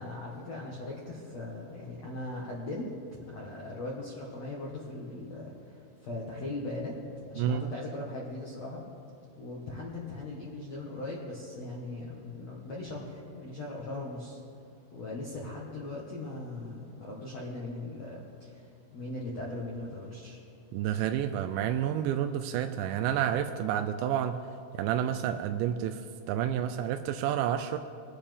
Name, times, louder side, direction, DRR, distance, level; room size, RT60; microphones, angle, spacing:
voice 1, 0.0-2.9 3.3-7.0 7.3-8.8 9.4-14.4 14.9-18.7 18.9-20.4, left 2 dB, 75° left, -4 dB, 1.5 m, -39 dB
voice 2, 20.7-24.4 24.7-26.0 26.3-27.8, right 10 dB, 85° right, 7 dB, 2.8 m, -29 dB
22.0 x 9.8 x 3.5 m, 2.7 s
omnidirectional pair, 5.5 m